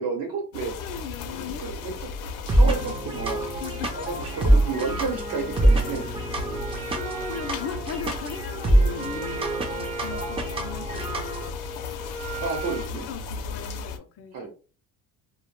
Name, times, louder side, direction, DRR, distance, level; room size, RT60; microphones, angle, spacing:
voice 1, 0.0-0.7 1.2-2.1 2.5-3.4 4.0-6.1 12.4-13.1 14.3-14.5, right 4 dB, 70° right, 0.9 m, -31 dB
sound 1, 0.5-14.0, left 4 dB, 85° left, 0.6 m, -36 dB
voice 2, 0.8-1.8 2.6-2.9 3.6-4.1 6.0-6.6 7.0-11.6 13.1-14.5, left 7 dB, 40° left, 0.5 m, -38 dB
sound 2, 2.5-11.5, right 1 dB, 15° right, 0.4 m, -25 dB
Wind instrument woodwind instrument, 5.0-13.0, right 1 dB, 40° right, 0.7 m, -38 dB
2.2 x 2.1 x 3.0 m
cardioid pair, 120°, 36 cm